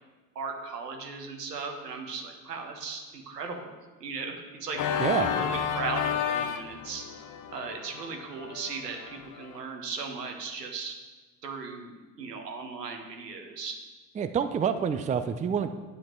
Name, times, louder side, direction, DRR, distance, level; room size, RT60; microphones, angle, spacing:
voice 1, 0.3-7.0 7.5-10.9 11.4-13.8, right 4 dB, 85° right, 3 dB, 1.4 m, -37 dB
Organ, 4.7-9.6, left 8 dB, 40° left, 0.9 m, -32 dB
voice 2, 5.0-5.3 14.2-15.7, right 7 dB, 15° right, 9 dB, 0.5 m, -27 dB
9.5 x 7.2 x 4.6 m, 1.3 s
hypercardioid pair, 70°, 47 cm